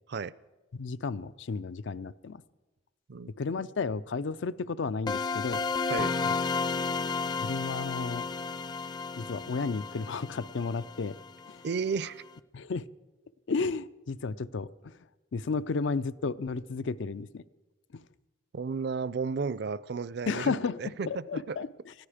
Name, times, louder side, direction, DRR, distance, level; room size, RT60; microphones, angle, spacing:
voice 1, 0.7-2.4 3.4-5.6 6.2-6.3 7.4-8.3 9.2-11.2 11.5-11.6 12.5-12.9 13.5-15.0 15.3-17.4 17.9-18.0 20.3-21.9, left 4 dB, 75° left, 17 dB, 0.5 m, -33 dB
sound 1, 5.1-11.7, left 4 dB, 25° left, 0.5 m, -32 dB
voice 2, 11.6-12.2 18.5-21.6, right 5 dB, 60° right, 20 dB, 0.4 m, -33 dB
20.0 x 14.0 x 5.0 m, 1.1 s
head